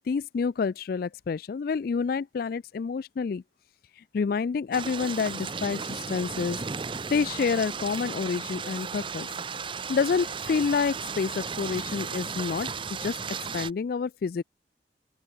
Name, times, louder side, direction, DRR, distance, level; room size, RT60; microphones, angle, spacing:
voice 1, 0.1-3.4 4.1-6.6 7.1-9.3 9.9-12.7 13.0-13.2 13.5-14.4, left 5 dB, 50° left, 0.3 m, -28 dB
sound 1, 4.7-13.7, right 5 dB, 25° right, 0.6 m, -35 dB
open air
head